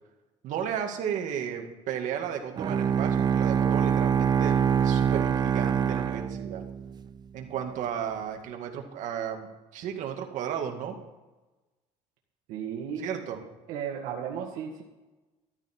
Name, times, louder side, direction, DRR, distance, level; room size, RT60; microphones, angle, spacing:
voice 1, 0.4-6.6 7.3-9.5 9.7-11.0 13.0-13.4, right 8 dB, 65° right, 4 dB, 2.0 m, -34 dB
Bowed string instrument, 2.6-7.0, right 8 dB, 30° right, 0.5 m, -25 dB
voice 2, 12.5-13.2 13.7-14.8, right 7 dB, 85° right, -1 dB, 1.8 m, -35 dB
13.5 x 12.5 x 4.5 m, 1.1 s
cardioid pair, 140°, 14 cm